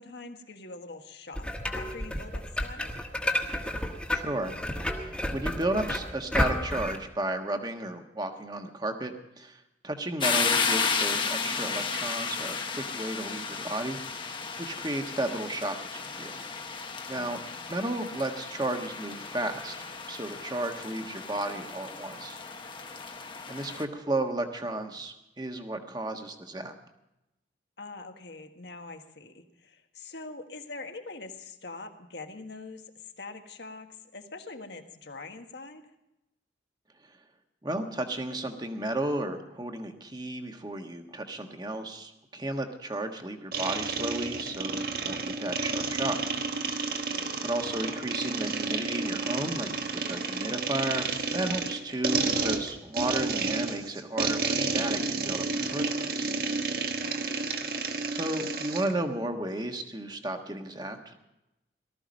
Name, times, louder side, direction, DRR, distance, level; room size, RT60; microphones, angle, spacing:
voice 1, 0.0-2.9 17.1-17.6 27.8-35.9 47.1-47.5 57.0-57.4, left 3 dB, 70° left, 5 dB, 1.5 m, -44 dB
sound 1, 1.3-7.0, left 1 dB, 5° left, 1.4 m, -31 dB
voice 2, 4.1-4.5 4.8-14.0 14.3-16.3 17.1-17.4 17.7-19.7 20.1-22.4 23.5-26.7 37.6-46.2 46.5-46.9 47.4-56.3 58.1-61.1, right 1 dB, 25° right, 5 dB, 1.4 m, -33 dB
sound 2, 10.2-23.8, left 5 dB, 25° left, 1.0 m, -33 dB
sound 3, 43.5-58.9, right 4 dB, 55° right, 1.3 m, -31 dB
18.5 x 13.5 x 5.2 m, 0.90 s
head